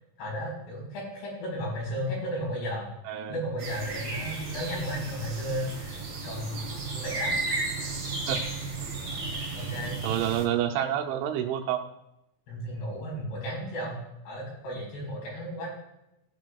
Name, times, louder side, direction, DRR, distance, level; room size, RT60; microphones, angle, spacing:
voice 1, 0.2-7.4 9.5-10.0 12.5-14.0 14.2-15.7, equal, 60° left, -2 dB, 6.2 m, -34 dB
voice 2, 3.1-3.4 8.3-8.4 10.0-11.8, right 11 dB, 80° right, 4 dB, 3.0 m, -28 dB
sound 1, 3.6-10.4, right 3 dB, 35° right, 4.4 m, -34 dB
18.0 x 9.7 x 2.3 m, 0.88 s
omnidirectional pair, 5.6 m